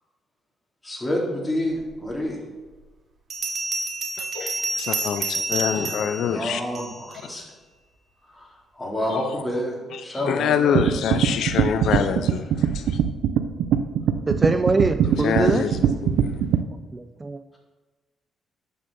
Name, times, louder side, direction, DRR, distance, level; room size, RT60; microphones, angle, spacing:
voice 1, 0.8-2.4 4.4-4.5 6.1-7.5 8.3-10.8, equal, 15° left, -3 dB, 3.9 m, -29 dB
Bell, 2.1-2.2 3.3-7.2, right 3 dB, 55° right, 2.1 m, -29 dB
voice 2, 4.2-6.6 9.1-9.4 9.9-13.0 15.1-16.4, left 8 dB, 75° left, 10 dB, 0.6 m, -26 dB
sound 1, 10.7-16.6, right 8 dB, 80° right, 0.8 m, -21 dB
voice 3, 14.3-15.7 16.9-17.4, right 3 dB, 25° right, 9 dB, 0.5 m, -23 dB
11.0 x 6.7 x 6.8 m, 1.3 s
cardioid pair, 90°, 0 cm